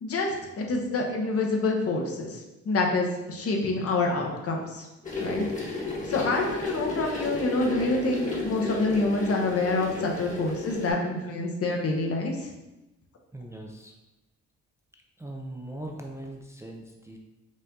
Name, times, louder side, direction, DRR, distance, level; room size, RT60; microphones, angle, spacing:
voice 1, 0.0-4.9 5.2-5.4 6.1-12.5, left 2 dB, 50° left, 1 dB, 0.9 m, -27 dB
sound 1, 5.0-10.9, left 3 dB, 25° left, 1.4 m, -33 dB
voice 2, 13.3-13.9 15.2-17.2, right 1 dB, 10° right, 0 dB, 0.5 m, -40 dB
5.3 x 2.6 x 3.7 m, 0.99 s
cardioid pair, 90°, 30 cm